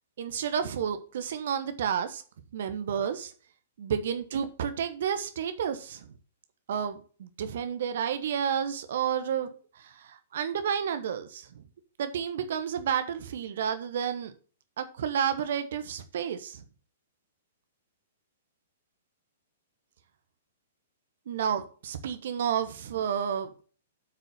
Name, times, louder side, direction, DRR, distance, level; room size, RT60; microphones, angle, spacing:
voice 1, 0.2-2.2 2.5-3.3 3.8-6.1 6.7-11.6 12.0-14.3 14.8-16.6 21.3-23.5, right 8 dB, 55° right, 10 dB, 1.1 m, -31 dB
8.0 x 6.7 x 6.3 m, 0.40 s
figure-of-eight pair, 110°, 0 cm